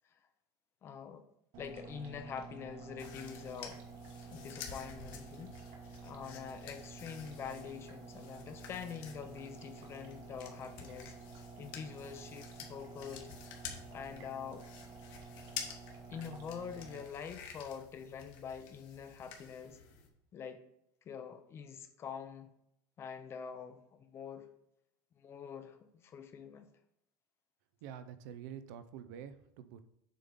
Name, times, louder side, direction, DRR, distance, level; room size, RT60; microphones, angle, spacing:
voice 1, 0.8-1.3 1.6-3.8 4.3-5.6 6.0-13.3 13.9-14.6 16.1-19.8 20.3-20.6 21.1-22.5 23.0-24.5 25.2-26.7, left 7 dB, 25° left, 8 dB, 0.6 m, -45 dB
electric water ornament, 1.5-17.0, right 5 dB, 55° right, 1.3 m, -51 dB
sound 1, 3.0-20.1, left 7 dB, 50° left, 1.3 m, -51 dB
voice 2, 27.8-29.8, right 9 dB, 75° right, 11 dB, 0.6 m, -47 dB
7.4 x 3.7 x 5.4 m, 0.76 s
cardioid pair, 165°, 10 cm